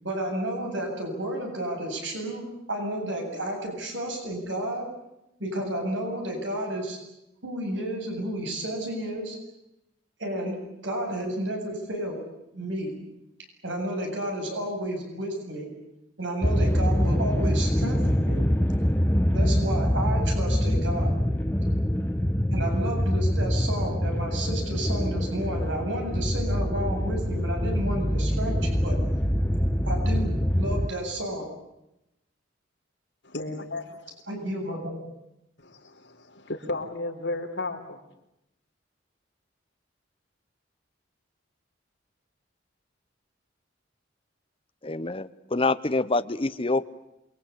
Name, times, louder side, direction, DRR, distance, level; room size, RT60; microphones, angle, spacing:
voice 1, 0.0-2.4 2.7-4.9 5.4-7.0 7.4-9.4 10.2-12.2 12.5-12.9 13.6-15.7 16.2-18.4 19.3-21.1 22.5-29.0 29.9-31.4 34.3-35.0, right 1 dB, 75° right, 2 dB, 7.9 m, -31 dB
sound 1, 16.4-30.9, equal, 10° left, 1.2 m, -25 dB
voice 2, 33.2-34.1 35.6-38.0, left 2 dB, 65° left, 3 dB, 4.4 m, -34 dB
voice 3, 44.8-46.9, left 3 dB, 30° left, 11 dB, 1.0 m, -26 dB
28.5 x 23.0 x 8.6 m, 0.88 s
head